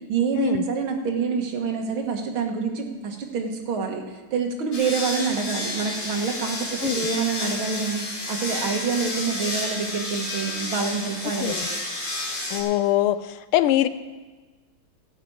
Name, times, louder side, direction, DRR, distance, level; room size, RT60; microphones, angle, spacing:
voice 1, 0.1-11.8, right 5 dB, 75° right, 3 dB, 2.2 m, -27 dB
sound 1, 4.7-12.6, left 1 dB, 45° left, 3.1 m, -31 dB
voice 2, 12.5-13.2 13.5-13.9, left 13 dB, 85° left, 14 dB, 1.5 m, -22 dB
14.5 x 6.0 x 8.5 m, 1.3 s
omnidirectional pair, 2.3 m